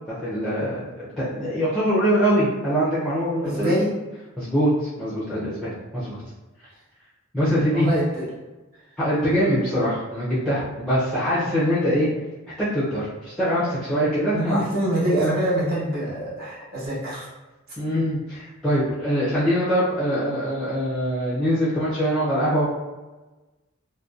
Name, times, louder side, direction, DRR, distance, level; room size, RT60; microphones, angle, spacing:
voice 1, 0.1-3.7 4.4-6.2 7.3-7.9 9.0-12.1 12.6-14.6 17.8-22.6, equal, ahead, -11 dB, 0.5 m, -23 dB
voice 2, 3.4-3.9 7.7-8.2 14.3-17.3, right 1 dB, 45° right, -8 dB, 0.9 m, -24 dB
2.6 x 2.1 x 2.4 m, 1.2 s
head